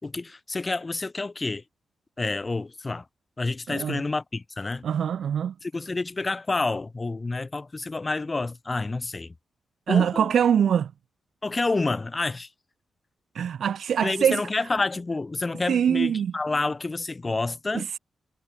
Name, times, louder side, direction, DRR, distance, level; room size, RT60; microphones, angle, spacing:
voice 1, 0.0-1.6 2.2-3.1 3.4-4.8 5.6-9.3 9.9-10.3 11.4-12.5 14.0-17.9, left 3 dB, 25° left, 2.3 m, -29 dB
voice 2, 3.7-4.0 4.8-5.5 9.9-10.9 13.3-14.4 15.7-16.3 17.7-18.0, right 8 dB, 75° right, 1.4 m, -23 dB
wide cardioid pair, 120°, 0 cm